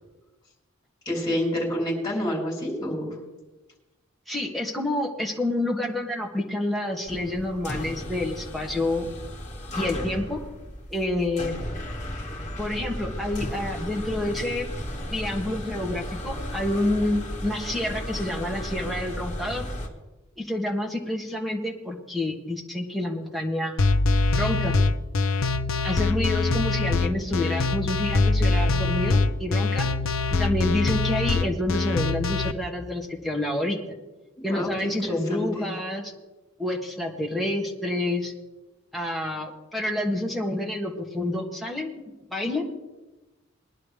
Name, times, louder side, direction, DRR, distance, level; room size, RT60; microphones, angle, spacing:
voice 1, 1.0-3.1 34.4-35.7, left 1 dB, 20° left, -3 dB, 4.9 m, -28 dB
voice 2, 4.3-9.1 9.7-10.4 10.9-11.6 12.6-14.7 15.0-19.6 20.4-23.8 24.3-24.7 25.8-29.9 30.4-33.8 34.4-36.1 36.6-38.3 38.9-42.0 42.3-42.7, left 1 dB, ahead, -1 dB, 1.6 m, -28 dB
sound 1, 7.1-19.9, left 1 dB, 35° left, 2.1 m, -35 dB
sound 2, 23.8-32.5, left 3 dB, 75° left, 0.7 m, -23 dB
21.0 x 11.0 x 3.3 m, 1.1 s
head